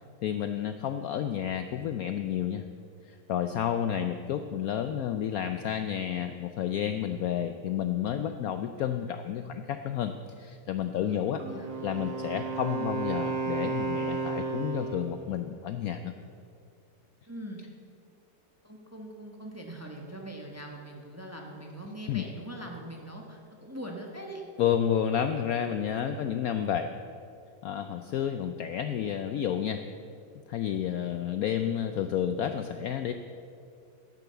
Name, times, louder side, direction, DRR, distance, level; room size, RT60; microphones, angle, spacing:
voice 1, 0.2-2.6 3.1-11.4 11.8-16.1 22.1-22.2 24.6-26.9 27.6-29.8 30.5-33.1, left 9 dB, 70° left, 8 dB, 0.9 m, -30 dB
Wind instrument woodwind instrument, 11.4-15.2, right 4 dB, 90° right, 2.1 m, -33 dB
voice 2, 11.5-11.8 17.3-17.6 18.6-24.4 26.0-26.2, right 1 dB, 10° right, 1 dB, 1.0 m, -42 dB
11.0 x 8.4 x 6.8 m, 2.4 s
omnidirectional pair, 1.9 m